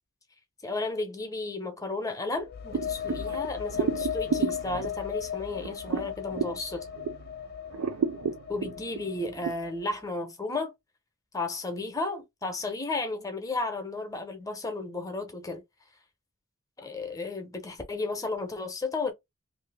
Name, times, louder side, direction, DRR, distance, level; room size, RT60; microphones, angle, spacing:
voice 1, 0.6-6.9 8.5-10.7 11.3-15.6 16.8-19.1, left 3 dB, 15° left, 0.7 m, -33 dB
sound 1, 2.4-10.0, left 9 dB, 50° left, 0.4 m, -37 dB
sound 2, 2.7-7.3 7.7-9.5, right 6 dB, 85° right, 0.3 m, -32 dB
2.6 x 2.6 x 3.4 m
head